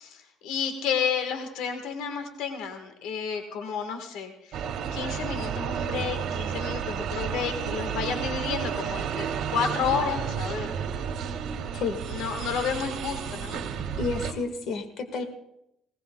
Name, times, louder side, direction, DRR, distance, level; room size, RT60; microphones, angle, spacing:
voice 1, 0.0-4.6 4.9-9.3 9.5-10.7 12.1-13.6, left 6 dB, 85° left, 6 dB, 1.4 m, -31 dB
sound 1, 4.5-14.3, right 7 dB, 65° right, 1.7 m, -31 dB
voice 2, 14.0-15.2, left 4 dB, 60° left, 7 dB, 1.6 m, -30 dB
20.5 x 18.0 x 2.3 m, 0.82 s
cardioid pair, 130°, 0 cm